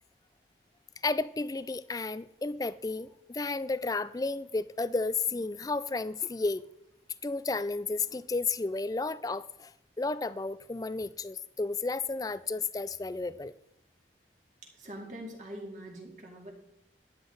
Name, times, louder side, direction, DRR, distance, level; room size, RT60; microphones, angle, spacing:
voice 1, 1.0-6.6 7.2-9.7 10.0-13.5, left 3 dB, 20° left, 16 dB, 0.3 m, -32 dB
voice 2, 14.6-16.5, right 1 dB, 45° right, 0 dB, 2.4 m, -43 dB
13.0 x 9.7 x 3.9 m, 0.79 s
head